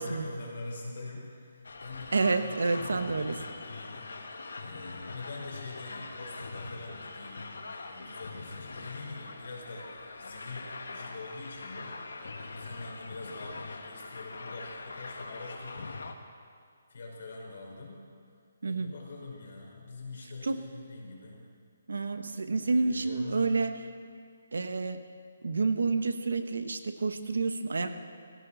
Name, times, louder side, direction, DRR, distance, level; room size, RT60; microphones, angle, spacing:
voice 1, 0.0-4.3 4.6-7.5 7.9-11.9 12.5-15.9 16.9-18.0 18.6-21.4 22.6-23.5, left 2 dB, 55° left, -2 dB, 5.1 m, -44 dB
sound 1, 1.6-16.1, left 3 dB, 85° left, 1.7 m, -43 dB
voice 2, 2.1-3.4 18.6-18.9 20.4-20.6 21.9-23.7 24.5-25.0 25.4-27.9, right 3 dB, 90° right, 8 dB, 1.4 m, -29 dB
20.0 x 16.5 x 4.2 m, 2.1 s
hypercardioid pair, 170°, 0 cm